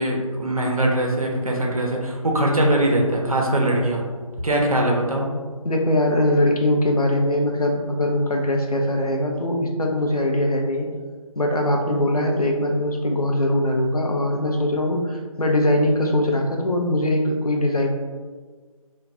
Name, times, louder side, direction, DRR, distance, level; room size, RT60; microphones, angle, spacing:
voice 1, 0.0-4.0 4.4-5.3, right 1 dB, 70° right, -1 dB, 0.7 m, -21 dB
voice 2, 5.6-10.9 11.4-17.9, left 1 dB, 85° left, 1 dB, 0.6 m, -21 dB
2.5 x 2.3 x 3.3 m, 1.5 s
figure-of-eight pair, 160°, 19 cm